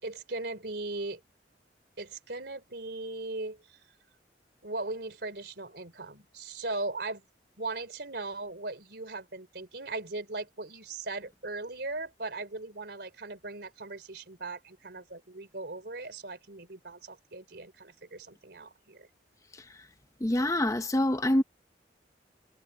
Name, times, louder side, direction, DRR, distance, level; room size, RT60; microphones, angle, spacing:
voice 1, 0.0-1.2 2.0-3.6 4.6-7.2 7.6-19.1, right 2 dB, 65° right, 3.8 m, -38 dB
voice 2, 20.2-21.4, left 1 dB, 20° left, 0.7 m, -26 dB
head